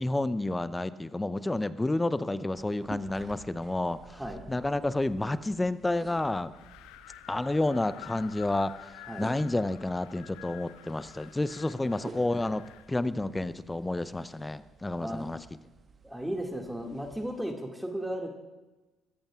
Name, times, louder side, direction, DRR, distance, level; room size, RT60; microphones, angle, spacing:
voice 1, 0.0-4.0 4.5-6.5 7.3-8.7 9.2-15.4, left 2 dB, 15° left, 15 dB, 0.6 m, -30 dB
sound 1, 2.5-17.4, right 4 dB, 35° right, 1.1 m, -52 dB
voice 2, 4.0-4.4 9.1-9.2 11.7-12.0 15.0-15.3 16.0-18.3, equal, 5° right, 2 dB, 2.1 m, -35 dB
Wind, 6.5-12.9, left 13 dB, 65° left, 0.5 m, -50 dB
27.5 x 14.5 x 2.4 m, 1.1 s
figure-of-eight pair, 50°, 0 cm